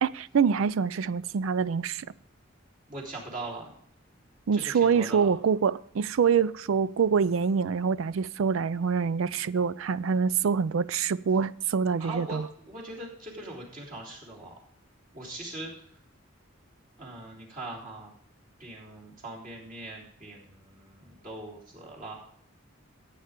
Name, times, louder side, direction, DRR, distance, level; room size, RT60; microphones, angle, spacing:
voice 1, 0.0-2.1 4.5-12.5, right 6 dB, 75° right, 0.4 m, -25 dB
voice 2, 2.9-3.7 4.5-4.6 4.9-5.3 12.0-12.4 12.7-14.5 15.1-15.7 17.0-18.1 18.6-22.1, right 2 dB, 40° right, 3.5 m, -41 dB
15.5 x 8.7 x 3.7 m
head